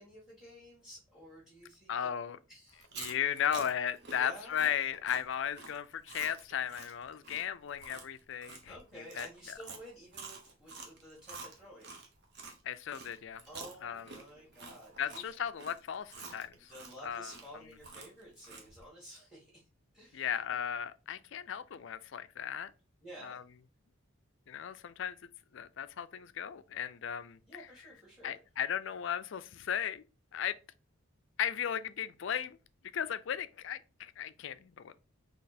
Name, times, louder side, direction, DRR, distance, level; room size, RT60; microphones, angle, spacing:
voice 1, 0.0-2.1 2.5-3.0 4.1-4.6 8.7-12.0 13.5-15.3 16.6-19.7 19.9-20.3 23.0-23.4 27.5-28.4, equal, ahead, 1.7 m, -52 dB
voice 2, 1.9-2.4 3.0-8.7 9.1-9.3 12.6-13.4 13.8-14.1 15.0-16.7 17.0-17.3 20.1-22.7 23.2-23.4 24.5-25.2 25.5-27.4 28.2-30.0 30.3-30.5 31.4-32.6 32.9-34.9, left 9 dB, 60° left, 0.4 m, -36 dB
Chewing mastication, 2.7-12.6 12.9-18.8, right 4 dB, 50° right, 1.0 m, -49 dB
4.2 x 2.9 x 4.1 m
head